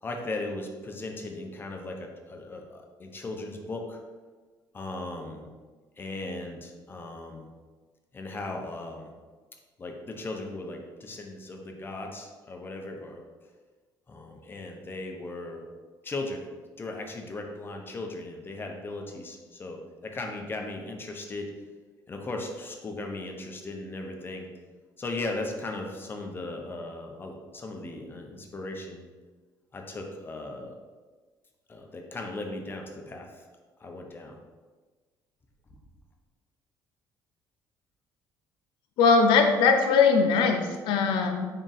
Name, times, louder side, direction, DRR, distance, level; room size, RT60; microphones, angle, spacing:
voice 1, 0.0-4.0 4.7-5.5 6.0-7.5 8.1-9.1 9.8-13.2 14.1-15.6 16.0-16.5 16.8-21.5 22.1-24.5 25.0-29.1 29.7-30.7 31.7-33.3 33.8-34.3, left 2 dB, 25° left, 2 dB, 0.5 m, -37 dB
voice 2, 39.0-41.5, left 5 dB, 85° left, 5 dB, 0.5 m, -21 dB
3.6 x 2.4 x 3.9 m, 1.4 s
cardioid pair, 110°, 8 cm